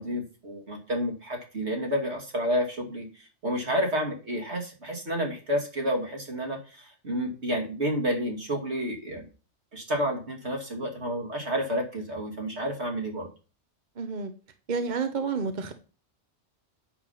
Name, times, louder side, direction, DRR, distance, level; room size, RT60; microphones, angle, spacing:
voice 1, 0.0-9.3 9.7-13.3, equal, 70° right, 1 dB, 2.9 m, -30 dB
voice 2, 14.0-14.3 14.7-15.7, right 5 dB, 45° right, 8 dB, 1.0 m, -29 dB
9.0 x 7.3 x 5.7 m, 0.35 s
omnidirectional pair, 1.2 m